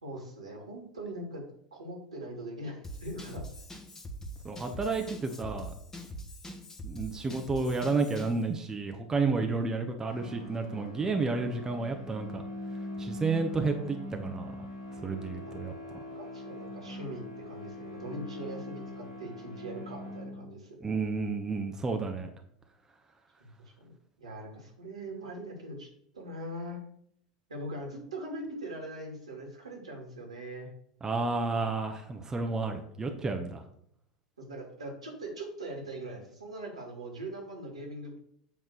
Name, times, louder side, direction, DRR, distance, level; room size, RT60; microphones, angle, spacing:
voice 1, 0.0-3.4 15.3-15.6 16.1-20.9 23.4-23.5 23.8-23.9 24.2-25.9 26.1-26.8 27.5-30.7 34.4-38.2, right 1 dB, 75° right, 0 dB, 2.6 m, -41 dB
Drum kit / Drum, 2.8-8.4, right 1 dB, 15° left, 1.5 m, -43 dB
voice 2, 4.4-5.7 6.8-12.4 13.0-14.7 15.0-15.7 20.8-22.3 31.0-33.6, right 3 dB, 15° right, 4 dB, 1.0 m, -31 dB
sound 1, 10.0-20.8, left 1 dB, 75° left, 2.0 m, -42 dB
8.2 x 3.6 x 6.5 m, 0.68 s
figure-of-eight pair, 80°, 3 cm